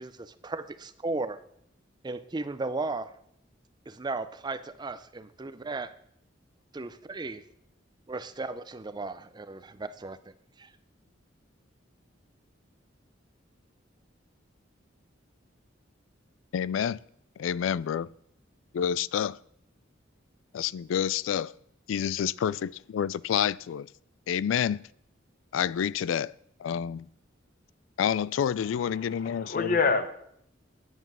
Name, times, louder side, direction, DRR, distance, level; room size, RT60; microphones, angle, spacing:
voice 1, 0.0-1.4 2.0-3.1 3.9-5.9 6.7-7.4 8.1-10.7, right 3 dB, 20° right, 0.5 m, -36 dB
voice 2, 16.5-17.0 17.4-18.1 18.7-19.4 20.5-21.5 21.9-23.9 24.3-24.8 25.5-26.3 26.6-27.1 28.0-29.8, left 8 dB, 85° left, 0.3 m, -28 dB
voice 3, 28.6-30.1, left 4 dB, 45° left, 0.9 m, -28 dB
9.3 x 7.8 x 6.1 m
head